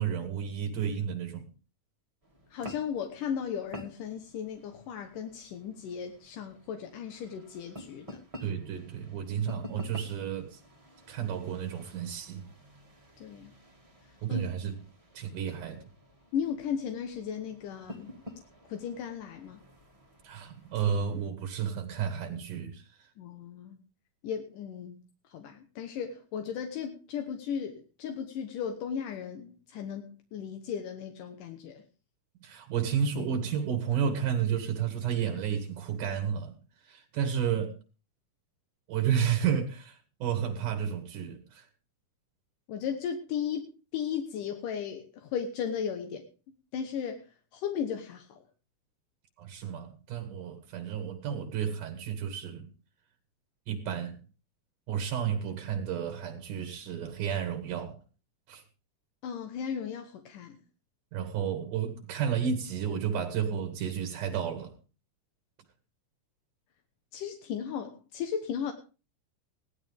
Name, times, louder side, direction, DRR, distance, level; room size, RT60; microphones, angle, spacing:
voice 1, 0.0-1.5 8.4-10.6 11.1-12.5 14.2-14.7 15.1-15.8 20.2-22.8 32.4-36.6 36.8-37.8 38.9-41.7 49.4-52.7 53.7-54.2 54.9-58.0 58.5-58.6 61.1-64.7, right 8 dB, 75° right, 3.1 m, -31 dB
sound 1, 2.2-21.3, left 1 dB, 15° right, 1.4 m, -50 dB
voice 2, 2.5-8.2 13.2-13.5 14.3-14.5 16.3-18.2 18.7-19.6 23.2-23.8 24.2-25.0 25.3-31.8 42.7-43.7 43.9-46.3 46.7-48.4 59.2-60.6 67.1-68.7, left 7 dB, 80° left, 2.7 m, -36 dB
17.5 x 13.0 x 3.5 m
omnidirectional pair, 3.7 m